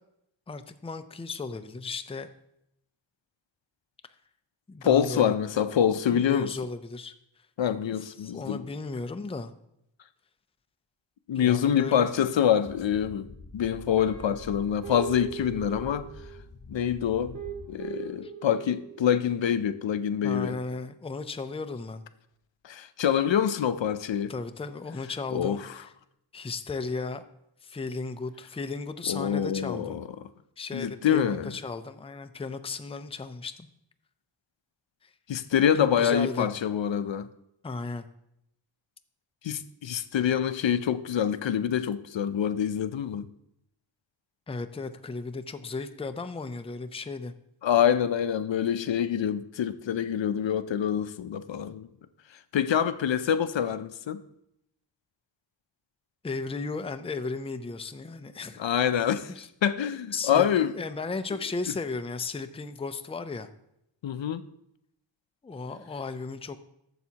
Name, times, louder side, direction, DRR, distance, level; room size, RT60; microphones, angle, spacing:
voice 1, 0.5-2.3 4.7-5.4 6.1-7.1 7.9-9.5 11.3-12.1 18.2-18.3 20.2-22.0 24.3-25.6 26.3-27.2 27.6-30.0 30.6-33.7 35.0-35.1 36.0-36.5 37.6-38.1 44.5-47.3 56.2-58.8 59.3-59.5 60.1-60.5 60.8-63.5 65.4-66.6, left 4 dB, 15° left, 0.4 m, -35 dB
voice 2, 4.8-6.5 7.6-8.7 11.3-16.1 16.7-17.4 17.7-20.6 22.6-24.3 25.3-25.7 29.1-30.1 30.7-31.5 35.3-37.3 39.4-43.3 47.6-51.9 52.5-54.2 58.6-59.3 59.6-60.7 64.0-64.5, left 9 dB, 75° left, 0.5 m, -26 dB
sound 1, 12.7-17.7, left 3 dB, 35° left, 0.8 m, -46 dB
Guitar, 14.0-16.4 17.1-19.1, right 10 dB, 85° right, 1.6 m, -41 dB
12.0 x 7.1 x 2.8 m
wide cardioid pair, 75°, 46 cm